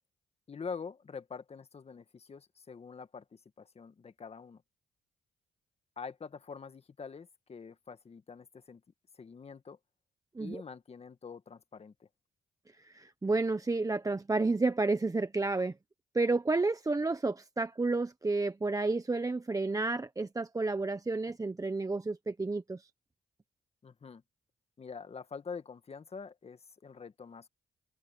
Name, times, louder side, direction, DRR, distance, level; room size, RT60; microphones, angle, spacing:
voice 1, 0.5-4.6 6.0-8.8 9.2-9.8 10.4-12.1 23.8-24.2 24.8-27.5, left 5 dB, 45° left, 1.8 m, -45 dB
voice 2, 12.8-15.7 16.1-22.9, right 3 dB, 25° right, 1.2 m, -31 dB
supercardioid pair, 60°, 15 cm